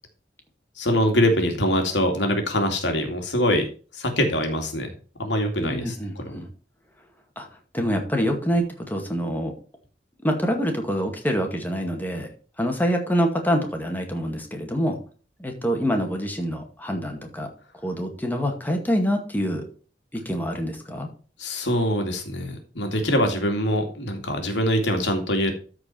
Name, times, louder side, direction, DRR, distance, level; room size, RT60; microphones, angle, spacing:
voice 1, 0.8-3.7 3.9-4.9 5.2-6.4 21.4-25.5, equal, 80° left, 4 dB, 2.5 m, -23 dB
voice 2, 5.6-6.5 7.4-7.5 7.7-9.5 10.2-12.3 12.6-15.0 15.4-17.5 17.8-19.6 20.1-21.1, equal, 10° left, 3 dB, 2.0 m, -26 dB
13.0 x 4.8 x 4.5 m, 0.38 s
head